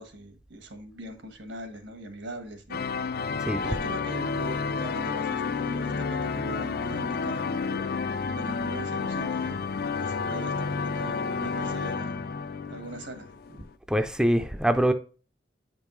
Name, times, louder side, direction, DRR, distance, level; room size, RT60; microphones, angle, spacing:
voice 1, 0.0-2.8 3.6-9.6 9.9-12.2 12.7-13.6, right 1 dB, 75° right, 1.4 m, -41 dB
sound 1, 2.7-13.7, left 5 dB, 50° left, 0.4 m, -30 dB
voice 2, 13.9-14.9, right 1 dB, 5° right, 0.4 m, -23 dB
8.8 x 5.3 x 3.1 m
head